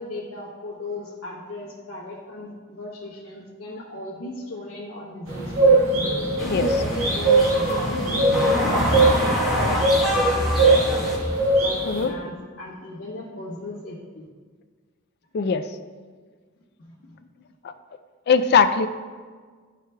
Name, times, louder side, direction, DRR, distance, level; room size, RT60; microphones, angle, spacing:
voice 1, 0.0-5.8 6.4-11.1 11.6-14.3 16.8-17.1, left 1 dB, 75° left, -6 dB, 1.2 m, -37 dB
sound 1, 5.3-12.0, right 2 dB, 75° right, 1.6 m, -21 dB
sound 2, 6.4-11.2, equal, ahead, 1.1 m, -25 dB
voice 2, 15.3-15.7 17.6-17.7 18.3-18.9, left 5 dB, 50° left, 10 dB, 0.4 m, -20 dB
10.5 x 4.9 x 2.2 m, 1.5 s
head